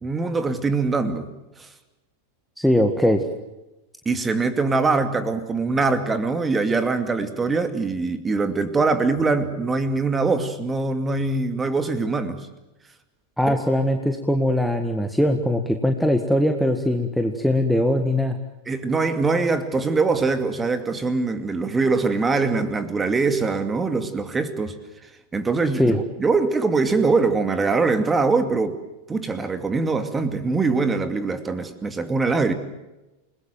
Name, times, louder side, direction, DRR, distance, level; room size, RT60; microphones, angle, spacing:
voice 1, 0.0-1.3 1.6-1.7 4.1-12.4 13.5-13.6 18.7-24.8 25.3-28.8 29.1-32.5, right 3 dB, 15° right, 9 dB, 2.5 m, -23 dB
voice 2, 2.6-3.2 13.4-18.4 25.8-26.0, left 1 dB, ahead, 5 dB, 1.8 m, -21 dB
29.0 x 20.5 x 7.7 m, 1.0 s
figure-of-eight pair, 90°, 0 cm